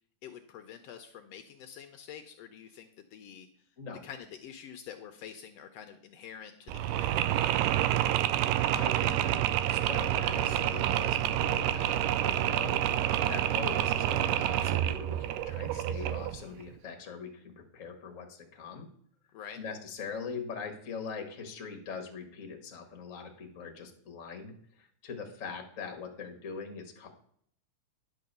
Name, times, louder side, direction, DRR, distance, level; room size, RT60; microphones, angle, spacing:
voice 1, 0.2-3.5 4.0-7.6 19.3-19.6, left 8 dB, 85° left, 6 dB, 1.4 m, -47 dB
Mechanisms, 6.7-16.4, right 12 dB, 90° right, 2.1 m, -28 dB
voice 2, 8.7-12.8 13.3-18.9 19.6-27.1, left 5 dB, 50° left, 4 dB, 1.0 m, -42 dB
10.5 x 4.8 x 6.6 m, 0.65 s
omnidirectional pair, 3.7 m